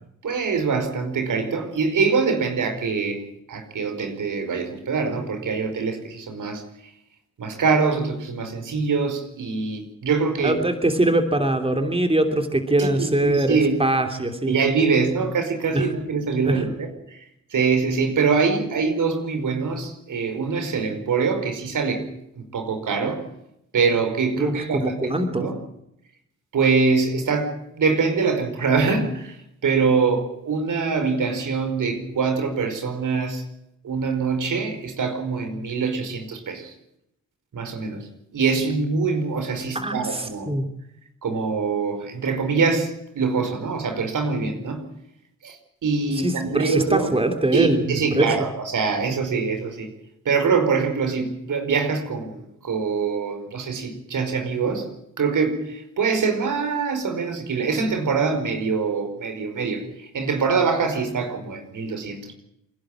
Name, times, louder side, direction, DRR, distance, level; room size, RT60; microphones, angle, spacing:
voice 1, 0.2-3.2 3.5-6.9 7.4-10.6 12.8-13.8 14.5-17.2 17.5-23.2 23.7-25.6 26.5-33.4 33.8-36.7 37.5-40.5 41.2-44.8 45.4-47.1 47.5-49.9 50.2-54.9 55.2-62.3, right 5 dB, 70° right, 6 dB, 5.0 m, -24 dB
voice 2, 10.4-14.5 15.7-15.9 24.4-25.5 39.7-40.7 46.2-48.3, right 1 dB, 15° right, 6 dB, 3.1 m, -22 dB
28.5 x 11.5 x 9.0 m, 0.79 s
cardioid pair, 70°, 32 cm